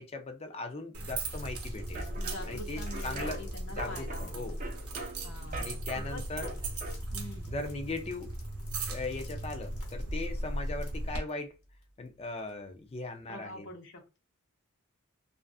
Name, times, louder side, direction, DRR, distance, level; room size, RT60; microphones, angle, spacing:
voice 1, 0.0-2.1 2.5-3.4 3.7-4.6 5.6-6.5 7.5-8.3 8.9-11.5 12.0-13.6, left 2 dB, 25° left, 0.4 m, -39 dB
sound 1, 0.9-11.2, right 1 dB, 80° right, 0.7 m, -37 dB
sound 2, 1.2-12.9, left 3 dB, 85° left, 1.0 m, -58 dB
sound 3, 1.8-7.0, right 2 dB, 35° right, 0.5 m, -43 dB
voice 2, 2.2-4.6 5.2-5.8 6.1-6.6 7.1-7.5 13.3-14.2, left 2 dB, 55° left, 0.8 m, -45 dB
2.4 x 2.4 x 2.3 m
head